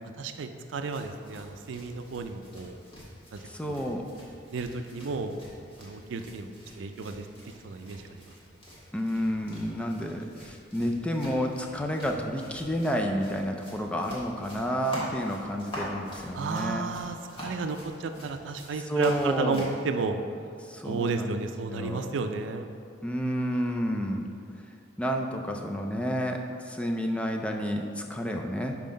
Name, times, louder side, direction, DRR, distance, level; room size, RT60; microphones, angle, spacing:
voice 1, 0.2-2.8 3.3-3.4 3.7-3.8 4.5-5.3 5.8-6.5 6.8-7.3 7.6-8.3 16.3-20.2 20.8-22.7, right 4 dB, 85° right, 7 dB, 0.4 m, -32 dB
sound 1, 0.6-19.8, equal, 30° left, 1.6 m, -45 dB
voice 2, 3.4-4.0 8.9-16.8 18.9-19.7 20.6-21.4 21.7-22.1 23.0-24.2 25.0-28.8, equal, 5° left, 2 dB, 0.4 m, -30 dB
5.7 x 4.6 x 5.1 m, 2.4 s
head